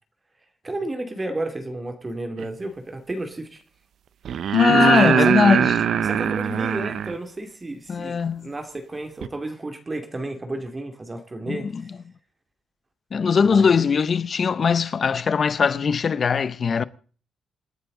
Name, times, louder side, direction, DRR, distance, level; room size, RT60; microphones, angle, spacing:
voice 1, 0.6-3.6 4.8-5.3 6.0-11.9 13.4-13.7, right 2 dB, 20° right, 2.5 m, -32 dB
sound 1, 2.4-2.5 4.2-7.1 9.2-9.3, right 8 dB, 65° right, 0.7 m, -21 dB
voice 2, 4.5-5.9 7.9-8.5 11.5-11.9 13.1-16.8, left 6 dB, 45° left, 0.8 m, -20 dB
27.5 x 9.7 x 3.9 m
cardioid pair, 110°, 0 cm